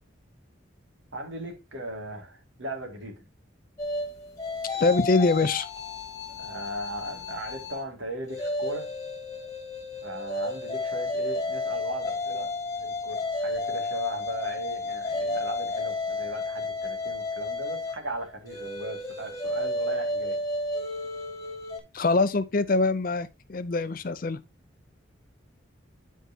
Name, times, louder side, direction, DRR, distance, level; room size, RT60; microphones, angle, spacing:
voice 1, 1.1-3.1 6.3-8.9 10.0-12.5 12.8-20.4, right 1 dB, 80° right, 2.3 m, -37 dB
sound 1, 3.8-7.8 8.2-21.8, left 2 dB, 20° left, 1.7 m, -32 dB
voice 2, 4.8-5.7 21.9-24.4, left 3 dB, 45° left, 0.5 m, -24 dB
11.5 x 4.6 x 2.8 m
head